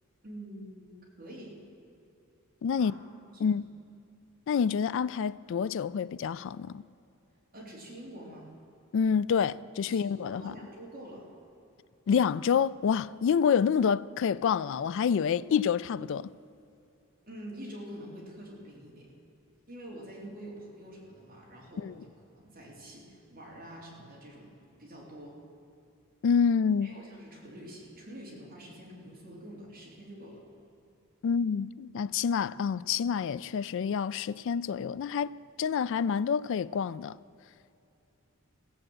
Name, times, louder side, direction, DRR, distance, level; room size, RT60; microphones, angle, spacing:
voice 1, 0.2-1.6 2.8-2.9 3.4-3.6 7.5-8.5 9.9-11.2 17.3-19.1 19.7-22.0 22.4-24.5 24.8-25.4 26.8-30.4, right 1 dB, 40° right, 3.0 m, -46 dB
voice 2, 2.6-2.9 3.4-3.7 4.5-6.8 8.9-10.5 12.1-16.3 21.8-21.9 26.2-26.9 31.2-37.2, left 7 dB, 60° left, 0.3 m, -28 dB
16.0 x 7.9 x 7.7 m
head